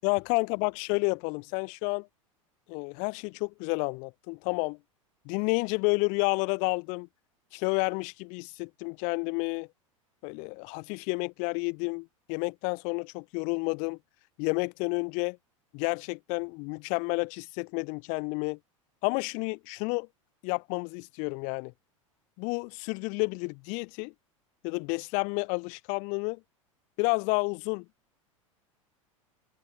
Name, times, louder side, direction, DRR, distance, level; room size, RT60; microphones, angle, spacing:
voice 1, 0.0-2.1 2.7-4.8 5.2-7.1 7.5-9.7 10.2-14.0 14.4-15.4 15.7-18.6 19.0-20.1 20.4-21.7 22.4-24.1 24.6-26.4 27.0-27.8, left 34 dB, 45° left, 3.4 m, -30 dB
figure-of-eight pair, 85°, 17 cm